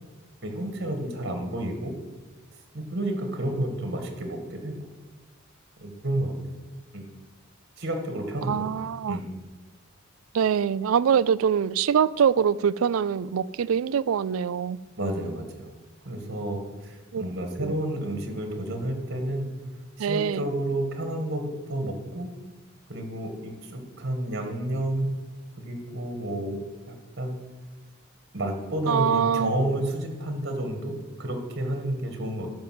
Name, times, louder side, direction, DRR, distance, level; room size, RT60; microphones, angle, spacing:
voice 1, 0.4-1.9 2.7-4.7 5.8-6.3 6.9-7.0 7.8-8.7 9.1-9.2 15.0-15.7 16.0-19.5 20.0-22.3 22.9-25.2 25.6-27.4 28.3-32.5, right 1 dB, 55° right, 1.9 m, -30 dB
voice 2, 8.4-9.2 10.3-14.8 17.1-17.2 17.6-17.8 20.0-20.5 28.9-29.5, right 7 dB, 85° right, 0.4 m, -24 dB
12.0 x 5.5 x 7.7 m
head